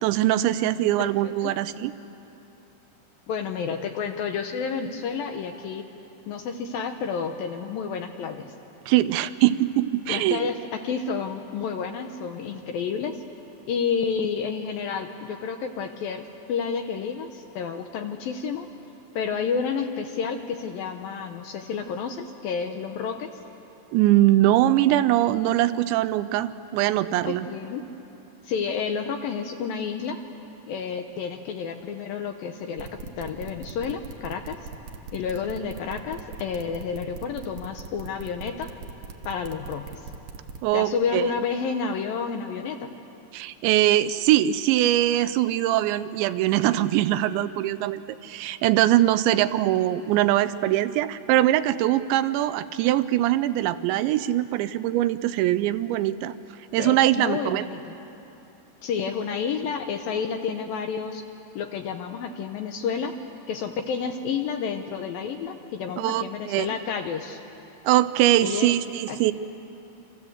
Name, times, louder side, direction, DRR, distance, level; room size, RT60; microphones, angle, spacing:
voice 1, 0.0-1.9 8.9-10.5 23.9-27.5 40.6-41.3 43.3-56.4 56.7-57.6 66.0-66.7 67.8-69.3, right 14 dB, 85° right, 13 dB, 3.0 m, -22 dB
voice 2, 3.3-5.8 6.3-8.5 10.1-13.2 13.7-18.7 19.1-23.3 27.3-27.8 28.4-30.2 30.7-34.6 35.1-38.7 39.3-40.0 40.7-42.9 56.8-58.0 58.8-61.2 61.6-63.2 63.5-67.4 68.4-68.7 69.1-69.2, left 6 dB, 70° left, 6 dB, 2.3 m, -30 dB
sound 1, 32.8-40.6, right 6 dB, 65° right, 2.3 m, -39 dB
28.0 x 26.0 x 8.0 m, 2.9 s
omnidirectional pair, 5.1 m